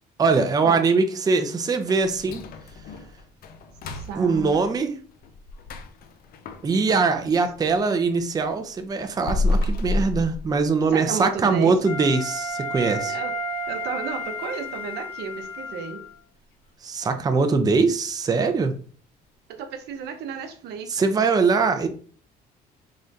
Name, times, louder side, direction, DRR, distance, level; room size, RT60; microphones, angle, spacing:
voice 1, 0.2-2.4 4.2-4.9 6.6-13.2 16.8-18.8 20.9-21.9, right 4 dB, 20° right, 7 dB, 0.5 m, -22 dB
sound 1, 1.9-7.8 8.2-11.0 11.4-11.5 12.0-12.1 12.6-12.9 13.2-13.3 13.9-14.0, left 2 dB, 60° left, 0.6 m, -31 dB
voice 2, 3.8-4.7 10.9-11.8 13.1-13.3 13.7-16.0 19.5-20.9, right 6 dB, 75° right, 6 dB, 0.7 m, -33 dB
Wind instrument woodwind instrument, 11.8-16.1, equal, 80° left, 1.8 m, -32 dB
3.7 x 3.2 x 2.6 m, 0.42 s
cardioid pair, 110°, 17 cm